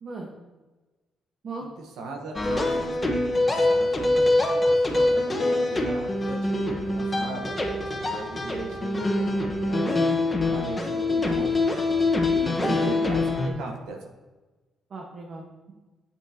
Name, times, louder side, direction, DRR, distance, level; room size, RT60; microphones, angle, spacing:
voice 1, 1.6-11.9 12.3-14.1, right 2 dB, 85° right, 2 dB, 1.2 m, -39 dB
sound 1, 2.3-13.5, left 2 dB, 20° left, 1.3 m, -24 dB
voice 2, 12.6-13.0 13.5-13.6 14.9-15.7, right 4 dB, 55° right, -1 dB, 1.3 m, -35 dB
9.0 x 7.5 x 2.9 m, 1.2 s
cardioid pair, 90°, 0 cm